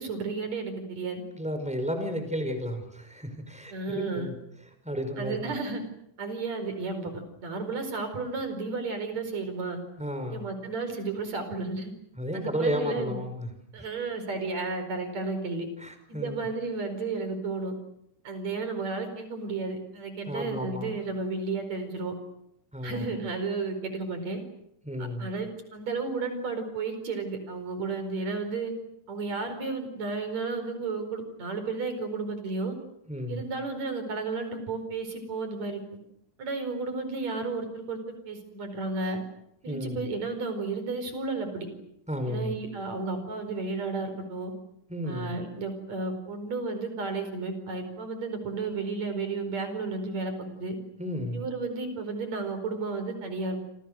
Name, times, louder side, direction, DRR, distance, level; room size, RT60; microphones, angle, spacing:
voice 1, 0.0-1.2 3.7-4.3 5.2-5.8 6.2-7.1 7.4-9.8 10.3-11.9 12.3-13.1 13.7-15.7 16.1-17.7 18.2-22.2 22.8-24.4 25.2-28.7 29.1-32.8 33.3-35.8 36.4-39.2 39.6-41.7 42.3-44.5 45.1-50.8 51.3-53.6, right 3 dB, 55° right, 8 dB, 6.0 m, -33 dB
voice 2, 1.4-4.3 4.8-5.5 10.0-10.4 12.2-13.5 15.8-16.5 20.3-21.0 22.7-23.1 24.8-25.3 33.1-33.4 39.7-40.0 42.1-42.6 44.9-45.3 51.0-51.4, equal, ahead, 7 dB, 4.8 m, -33 dB
28.5 x 28.0 x 6.6 m, 0.76 s
omnidirectional pair, 3.7 m